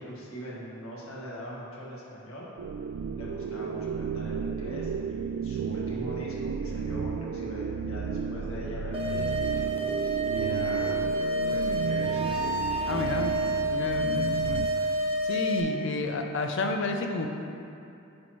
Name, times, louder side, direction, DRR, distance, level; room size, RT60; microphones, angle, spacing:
voice 1, 0.0-2.5 3.2-9.6 10.3-11.1 11.5-12.4, equal, 75° left, -6 dB, 1.8 m, -41 dB
sound 1, 2.6-14.7, right 6 dB, 80° right, 0.3 m, -33 dB
sound 2, 8.9-15.6, right 1 dB, 30° right, 0.6 m, -29 dB
voice 2, 12.9-13.4 13.7-15.0 15.2-17.3, left 2 dB, 60° left, 4 dB, 0.6 m, -31 dB
9.4 x 5.8 x 3.1 m, 2.7 s
head